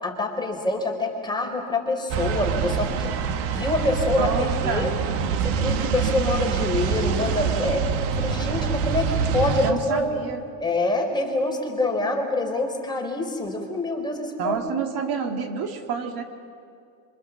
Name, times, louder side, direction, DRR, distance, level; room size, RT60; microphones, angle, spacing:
voice 1, 0.0-3.1 3.5-4.9 5.4-10.0 10.6-14.7, left 2 dB, 10° left, 1 dB, 4.2 m, -26 dB
sound 1, 2.1-9.7, right 6 dB, 85° right, 1.8 m, -25 dB
voice 2, 4.2-4.9 9.6-10.4 14.4-16.2, right 6 dB, 65° right, 4 dB, 2.2 m, -28 dB
26.0 x 25.0 x 7.3 m, 2.3 s
cardioid pair, 140°, 39 cm